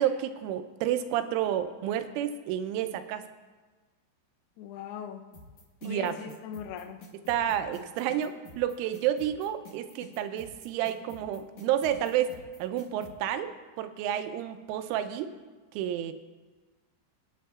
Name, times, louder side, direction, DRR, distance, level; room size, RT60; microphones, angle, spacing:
voice 1, 0.0-3.2 5.8-6.2 7.3-15.3 15.7-16.1, right 10 dB, 85° right, 9 dB, 3.1 m, -30 dB
voice 2, 4.6-5.3 5.8-7.0, left 7 dB, 85° left, 3 dB, 2.3 m, -40 dB
sound 1, 5.3-13.1, left 3 dB, 60° left, 1.8 m, -49 dB
22.0 x 9.5 x 2.4 m, 1.3 s
omnidirectional pair, 5.6 m